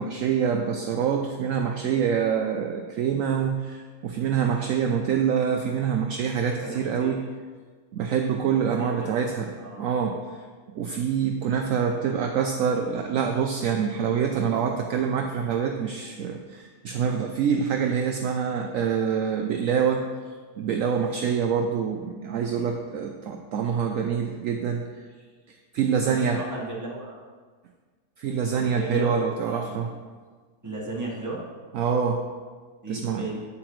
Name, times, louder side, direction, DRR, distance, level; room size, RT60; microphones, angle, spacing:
voice 1, 0.0-7.2 7.9-9.5 9.8-10.1 10.8-20.0 20.6-24.8 25.5-26.4 28.2-29.9 31.7-32.2 32.9-33.3, right 7 dB, 70° right, 4 dB, 0.8 m, -26 dB
voice 2, 6.5-7.2 8.7-9.1 9.6-9.9 26.1-27.2 28.2-29.9 30.6-31.4 32.8-33.4, right 2 dB, 10° right, -4 dB, 1.3 m, -36 dB
8.6 x 8.4 x 3.1 m, 1.5 s
omnidirectional pair, 1.8 m